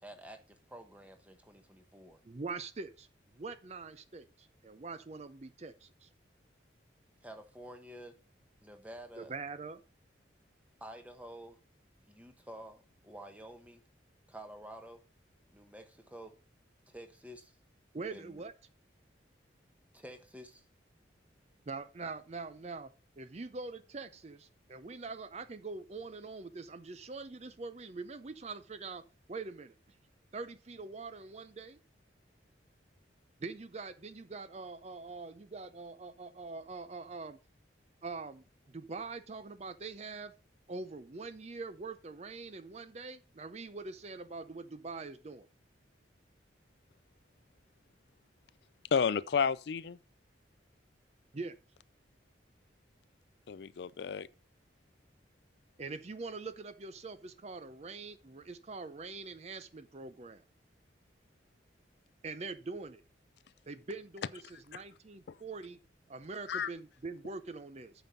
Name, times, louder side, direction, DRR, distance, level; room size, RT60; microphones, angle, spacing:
voice 1, 0.0-2.2 7.2-8.2 8.6-9.3 10.8-11.6 12.1-13.8 14.3-15.0 15.5-16.3 16.9-17.5 18.1-18.4 19.9-20.6, right 1 dB, 10° right, 1.1 m, -50 dB
voice 2, 2.2-3.1 3.3-6.1 9.1-9.8 17.9-18.5 21.7-22.9 23.2-29.0 29.3-30.0 30.3-31.8 33.4-37.4 38.0-40.3 40.7-45.5 51.3-51.6 55.8-60.4 62.2-63.0 63.7-65.8 66.1-67.9, right 3 dB, 35° right, 0.5 m, -43 dB
voice 3, 48.9-50.0 53.5-54.3 64.7-64.8 66.5-66.7, left 6 dB, 60° left, 0.4 m, -31 dB
9.0 x 6.0 x 5.2 m
head